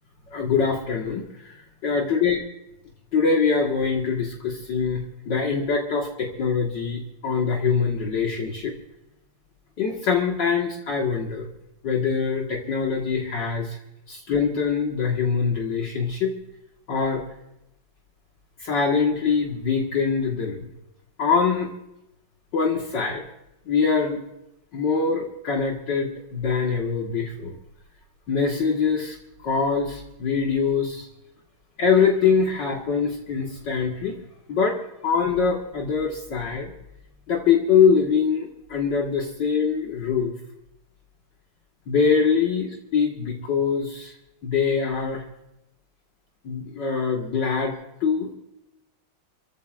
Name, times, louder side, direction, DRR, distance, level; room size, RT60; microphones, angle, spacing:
voice 1, 0.3-1.5 1.8-2.4 3.1-8.7 9.8-11.5 11.8-13.8 14.1-16.3 16.9-17.2 18.6-20.7 21.2-21.7 22.5-23.2 23.7-24.2 24.7-27.6 28.3-29.2 29.4-31.1 31.8-34.2 34.5-36.7 37.3-40.4 41.9-44.1 44.4-45.3 46.4-48.3, left 5 dB, 65° left, -1 dB, 2.3 m, -23 dB
27.5 x 15.5 x 2.5 m, 0.86 s
omnidirectional pair, 2.2 m